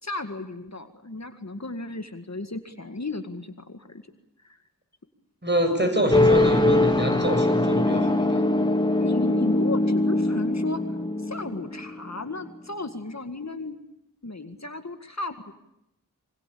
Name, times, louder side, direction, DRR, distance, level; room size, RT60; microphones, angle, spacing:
voice 1, 0.0-4.0 4.4-4.6 9.0-13.8 14.2-15.5, left 2 dB, 50° left, 7 dB, 2.0 m, -34 dB
voice 2, 5.4-8.4, equal, 30° right, 6 dB, 7.7 m, -25 dB
sound 1, 6.1-12.5, left 2 dB, 15° left, 2.9 m, -22 dB
26.5 x 25.0 x 8.6 m, 0.83 s
wide cardioid pair, 55°, 35 cm